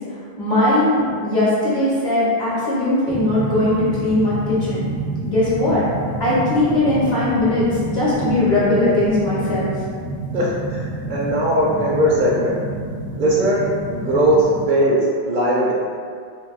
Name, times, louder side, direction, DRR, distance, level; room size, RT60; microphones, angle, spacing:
voice 1, 0.4-4.9 5.3-5.8 6.2-9.8, left 1 dB, 45° left, -9 dB, 1.0 m, -19 dB
sound 1, 3.1-14.7, right 2 dB, 15° left, 0.4 m, -28 dB
voice 2, 10.3-12.6 13.2-13.6 13.9-15.7, right 1 dB, 60° right, -4 dB, 0.6 m, -19 dB
2.6 x 2.2 x 3.9 m, 2.1 s
omnidirectional pair, 1.1 m